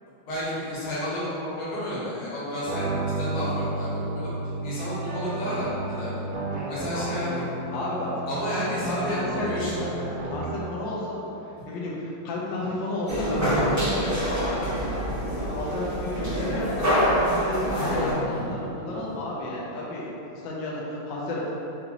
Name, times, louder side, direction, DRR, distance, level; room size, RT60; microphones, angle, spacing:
voice 1, 0.3-4.3 4.6-6.3 6.7-7.4 8.3-9.9 11.6-11.7 18.3-18.7 19.0-19.2, equal, 85° left, -9 dB, 2.3 m, -31 dB
sound 1, 2.6-10.7, right 2 dB, 80° right, 0.8 m, -32 dB
voice 2, 7.7-8.1 8.8-11.2 11.7-14.9 15.4-21.5, left 1 dB, 70° left, -5 dB, 1.3 m, -32 dB
sound 2, 13.1-18.1, equal, 15° right, 0.5 m, -25 dB
6.7 x 2.5 x 2.9 m, 2.9 s
omnidirectional pair, 2.3 m